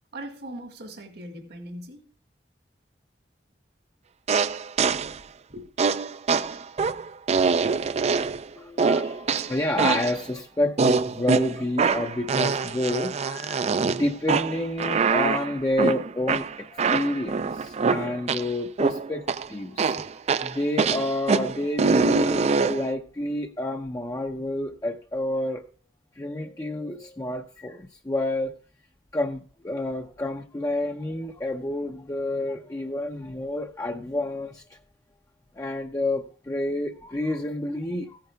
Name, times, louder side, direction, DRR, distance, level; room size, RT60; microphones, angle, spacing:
voice 1, 0.1-2.1 5.5-5.7, right 1 dB, 65° right, 2.0 m, -39 dB
sound 1, 4.3-5.2 5.8-8.5 8.8-10.2 10.8-18.5 18.8-19.5 19.8-22.9, right 4 dB, 40° right, 0.4 m, -24 dB
voice 2, 8.6-20.0 20.4-25.6 26.2-28.6 29.1-34.8 35.5-38.2, left 1 dB, 20° left, 0.6 m, -29 dB
15.0 x 10.5 x 2.3 m
head